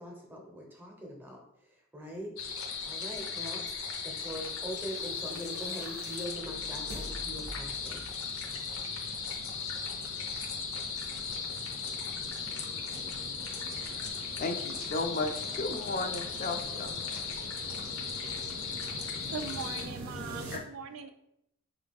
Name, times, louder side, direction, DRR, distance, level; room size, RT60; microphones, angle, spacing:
voice 1, 0.0-1.4 1.7-2.3 2.8-3.6 4.0-8.0, equal, 10° right, 0 dB, 0.7 m, -42 dB
sound 1, 2.4-19.9, left 5 dB, 85° left, 0.6 m, -37 dB
sound 2, 4.8-20.6, equal, 85° right, 0.7 m, -46 dB
voice 2, 14.4-16.9 20.5-20.6, left 3 dB, 40° left, 5 dB, 0.3 m, -34 dB
voice 3, 19.3-21.1, right 6 dB, 65° right, 8 dB, 0.3 m, -40 dB
3.8 x 2.3 x 3.4 m, 0.79 s
head